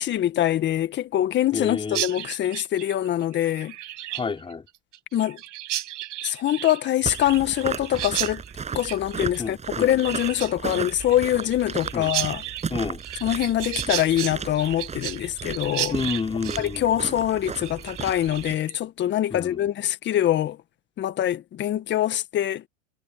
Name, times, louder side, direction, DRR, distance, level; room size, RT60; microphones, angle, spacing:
voice 1, 0.0-3.7 5.1-5.4 6.2-8.4 8.7-12.4 13.2-16.0 16.6-20.6 21.0-22.6, left 12 dB, 30° left, 1.8 m, -24 dB
voice 2, 1.5-2.0 4.1-4.6 9.4-9.9 11.9-12.1 12.7-13.0 15.9-17.2 19.3-19.6, left 5 dB, 15° left, 5.5 m, -30 dB
Chirp tweet, 1.9-18.7, right 15 dB, 70° right, 5.9 m, -34 dB
sound 1, 7.0-18.5, right 6 dB, 20° right, 7.0 m, -35 dB
hypercardioid pair, 125°, 38 cm